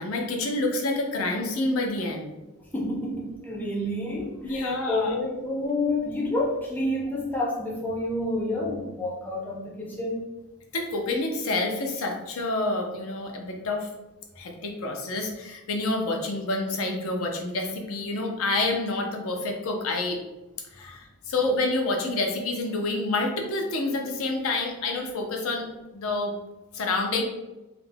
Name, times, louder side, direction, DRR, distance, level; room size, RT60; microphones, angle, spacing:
voice 1, 0.0-2.3 4.4-5.1 10.7-13.9 14.4-20.2 20.7-25.7 25.9-26.3 26.7-27.2, left 2 dB, 70° left, 2 dB, 0.5 m, -28 dB
voice 2, 2.7-10.2 20.8-20.9, left 1 dB, 10° left, -4 dB, 0.4 m, -29 dB
2.4 x 2.1 x 3.2 m, 1.1 s
head